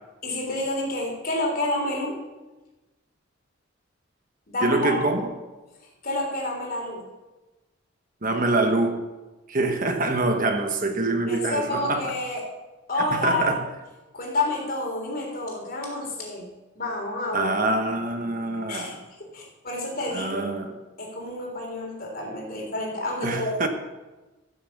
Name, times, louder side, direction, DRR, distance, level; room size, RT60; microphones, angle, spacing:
voice 1, 0.2-2.2 4.5-5.1 6.0-7.0 11.3-12.4 12.9-13.6 14.1-16.5 16.8-17.5 18.7-18.9 19.2-20.4 21.0-23.7, left 2 dB, 45° left, 3.5 m, -29 dB
voice 2, 4.6-5.3 8.2-9.1 9.5-12.1 13.1-13.6 17.3-19.0 20.1-20.7 23.2-23.7, right 2 dB, 45° right, 1.2 m, -25 dB
15.5 x 7.2 x 7.1 m
head